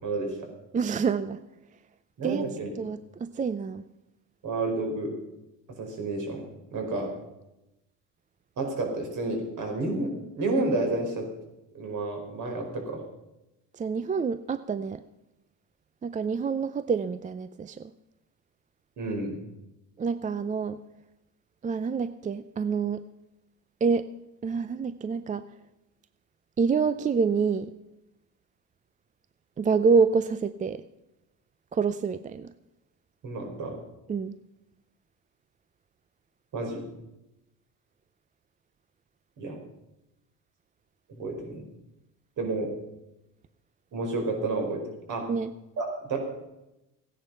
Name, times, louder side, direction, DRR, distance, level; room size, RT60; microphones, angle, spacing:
voice 1, 0.0-0.5 2.2-2.7 4.4-5.1 5.8-6.4 6.7-7.1 8.6-11.2 11.7-13.0 19.0-19.4 33.2-33.8 36.5-36.9 39.4-39.6 41.1-41.6 42.4-42.7 43.9-44.8 45.1-45.3 45.8-46.2, right 2 dB, 55° right, 2 dB, 5.0 m, -30 dB
voice 2, 0.7-1.4 2.2-2.5 2.8-3.8 13.8-15.0 16.0-17.9 20.0-20.8 21.6-23.0 23.8-24.1 24.4-25.4 26.6-27.7 29.6-30.8 31.7-32.5 34.1-34.3 45.3-45.5, right 5 dB, 20° right, 13 dB, 0.5 m, -27 dB
16.0 x 10.0 x 5.6 m, 0.92 s
cardioid pair, 110°, 36 cm